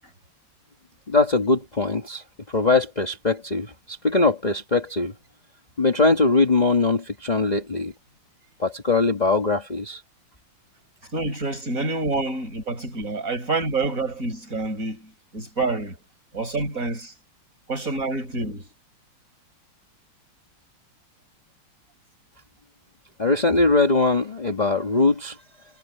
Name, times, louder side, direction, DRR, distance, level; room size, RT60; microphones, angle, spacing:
voice 1, 1.1-5.1 5.8-7.9 8.6-10.0 23.2-25.4, left 3 dB, 20° left, 1.6 m, -21 dB
voice 2, 11.1-16.0 16.3-17.1 17.7-18.7, right 3 dB, 35° right, 7.2 m, -27 dB
omnidirectional pair, 2.4 m